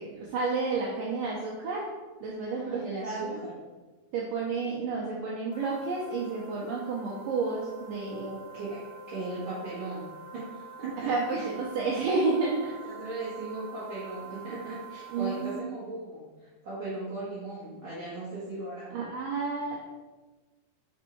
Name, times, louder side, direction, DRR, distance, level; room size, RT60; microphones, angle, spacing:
voice 1, 0.0-1.9 2.2-3.4 4.1-8.3 11.1-12.8 15.1-15.7 18.9-19.9, right 4 dB, 75° right, -3 dB, 2.1 m, -31 dB
voice 2, 2.5-3.5 8.1-11.5 12.9-19.0, right 2 dB, 55° right, -10 dB, 1.4 m, -38 dB
sound 1, 5.5-15.6, right 3 dB, 90° left, 2.6 m, -46 dB
5.2 x 4.5 x 4.5 m, 1.3 s
omnidirectional pair, 4.4 m